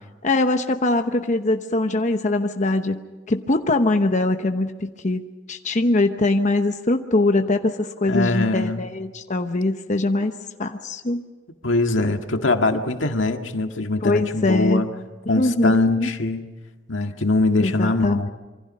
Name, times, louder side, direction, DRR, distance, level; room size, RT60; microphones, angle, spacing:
voice 1, 0.2-5.2 5.5-10.3 10.6-11.2 14.0-14.8 15.3-16.1 17.6-18.3, left 2 dB, 40° left, 6 dB, 0.9 m, -22 dB
voice 2, 8.1-8.8 11.6-14.9 15.3-16.4 16.9-18.3, left 2 dB, 85° left, 5 dB, 1.8 m, -22 dB
27.0 x 24.5 x 5.5 m, 1.2 s
head